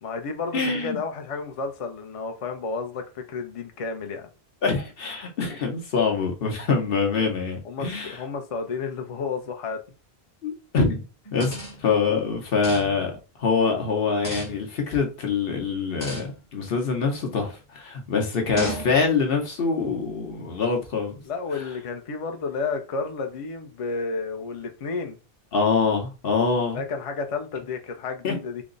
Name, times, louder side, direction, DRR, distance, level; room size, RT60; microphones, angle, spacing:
voice 1, 0.0-4.3 7.6-9.8 21.2-25.2 26.7-28.6, left 4 dB, 45° left, 0.5 m, -31 dB
voice 2, 0.5-1.0 4.6-8.2 10.4-11.0 11.3-21.2 21.5-21.6 25.5-26.8 28.2-28.3, left 5 dB, 65° left, 1.0 m, -25 dB
sound 1, 11.3-12.0 12.6-13.1 14.2-14.7 16.0-16.4 17.2-17.5 18.6-19.2, right 1 dB, 20° left, 0.9 m, -35 dB
3.4 x 2.0 x 3.8 m
omnidirectional pair, 1.0 m